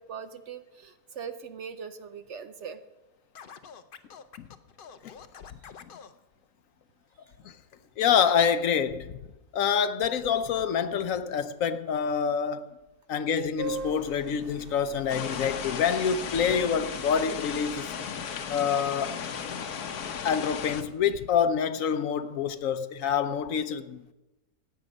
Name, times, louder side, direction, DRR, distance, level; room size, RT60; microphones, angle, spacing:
voice 1, 0.0-2.8, right 7 dB, 60° right, 0.9 m, -41 dB
Scratching (performance technique), 3.3-6.1, left 7 dB, 50° left, 0.7 m, -47 dB
voice 2, 8.0-9.2 9.5-12.7 13.1-17.9 18.5-19.2 20.2-24.1, left 7 dB, 70° left, 1.0 m, -26 dB
sound 1, 13.6-18.6, right 2 dB, 40° right, 1.3 m, -42 dB
sound 2, 15.1-20.8, left 7 dB, 90° left, 1.5 m, -35 dB
16.0 x 9.3 x 5.2 m
omnidirectional pair, 1.6 m